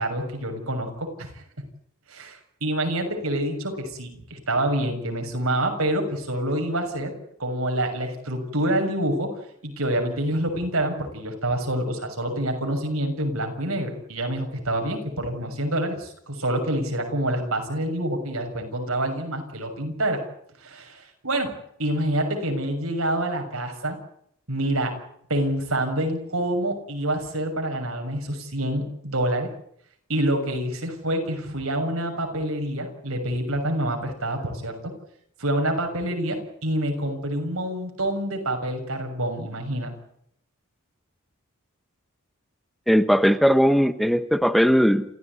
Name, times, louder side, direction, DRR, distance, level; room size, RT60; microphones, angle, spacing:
voice 1, 0.0-1.4 2.1-7.1 7.4-9.3 9.6-20.2 20.6-21.5 21.8-24.0 24.5-25.0 25.3-29.5 30.1-34.7 35.4-39.9, right 1 dB, 90° right, 4 dB, 6.7 m, -27 dB
voice 2, 42.9-45.0, equal, ahead, 10 dB, 1.0 m, -18 dB
28.5 x 15.5 x 9.6 m, 0.72 s
head